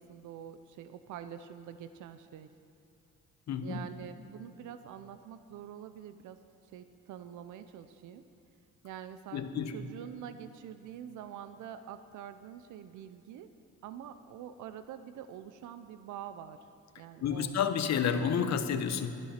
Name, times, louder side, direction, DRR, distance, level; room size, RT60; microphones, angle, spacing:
voice 1, 0.0-2.5 3.6-6.4 6.7-8.3 8.8-13.5 13.8-16.7 17.0-17.5, right 9 dB, 75° right, 11 dB, 0.6 m, -46 dB
voice 2, 3.5-3.8 9.3-9.7 17.2-19.1, left 7 dB, 65° left, 8 dB, 1.1 m, -30 dB
13.0 x 11.0 x 5.8 m, 2.9 s
cardioid pair, 90°, 30 cm